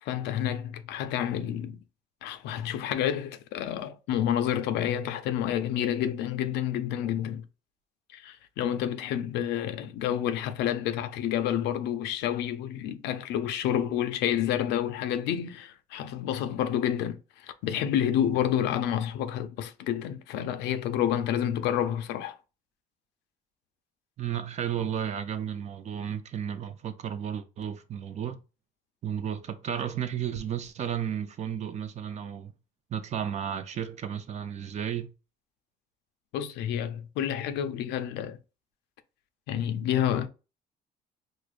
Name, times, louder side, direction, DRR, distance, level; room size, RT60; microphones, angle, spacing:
voice 1, 0.0-1.8 2.2-7.5 8.1-22.4 36.3-38.4 39.5-40.3, left 10 dB, 85° left, 0.5 m, -29 dB
voice 2, 24.2-28.4 29.0-32.5 32.9-35.1, right 9 dB, 40° right, 0.5 m, -33 dB
4.8 x 2.0 x 2.4 m
cardioid pair, 110°, 17 cm